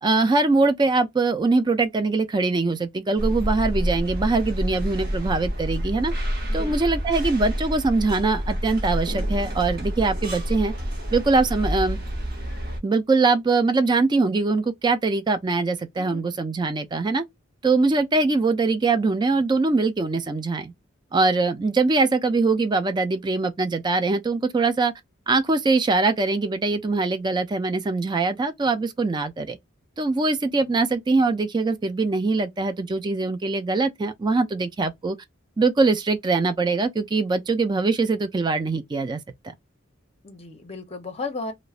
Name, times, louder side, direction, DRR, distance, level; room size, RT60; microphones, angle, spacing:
voice 1, 0.0-6.1 6.5-10.7 11.1-12.0 12.8-17.2 17.6-20.7 21.1-24.9 25.3-29.6 30.0-35.2 35.6-39.2, right 3 dB, 20° right, 0.3 m, -22 dB
sound 1, 3.2-12.8, equal, 50° right, 0.8 m, -28 dB
voice 2, 40.2-41.5, left 3 dB, 30° left, 0.7 m, -34 dB
2.9 x 2.0 x 2.4 m
head